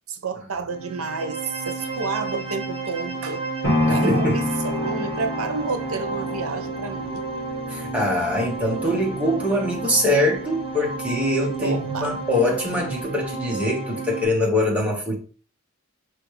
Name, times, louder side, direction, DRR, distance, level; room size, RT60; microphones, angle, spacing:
voice 1, 0.1-3.5 3.8-7.3 11.6-12.2, right 4 dB, 90° right, 0.6 m, -30 dB
sound 1, 0.7-14.2, right 4 dB, 30° right, 0.7 m, -32 dB
sound 2, 3.6-11.7 12.2-12.3, left 2 dB, 45° left, 1.8 m, -29 dB
voice 2, 3.9-4.4 7.7-15.1, left 1 dB, 5° right, 1.2 m, -23 dB
5.3 x 3.1 x 3.2 m
head